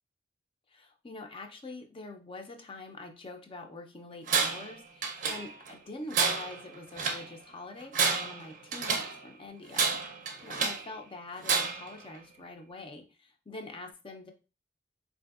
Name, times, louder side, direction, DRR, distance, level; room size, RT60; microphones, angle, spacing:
voice 1, 0.7-14.3, left 2 dB, 30° left, 4 dB, 0.5 m, -45 dB
Tools, 4.3-4.7 5.0-5.7 6.1-7.3 7.8-9.2 9.7-10.9 11.4-11.9, right 5 dB, 45° right, 0.5 m, -29 dB
3.8 x 2.6 x 2.3 m, 0.31 s
head